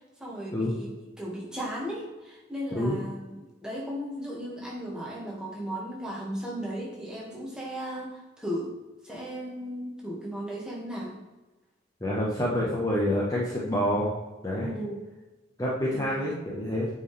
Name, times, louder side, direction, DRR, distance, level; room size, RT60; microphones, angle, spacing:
voice 1, 0.2-8.7 9.0-11.2 14.6-15.1 15.9-16.2, equal, 5° right, -5 dB, 1.7 m, -36 dB
voice 2, 12.0-14.1 14.4-14.7 15.6-16.9, left 1 dB, 20° left, -5 dB, 1.0 m, -27 dB
8.4 x 4.9 x 3.3 m, 1.1 s
head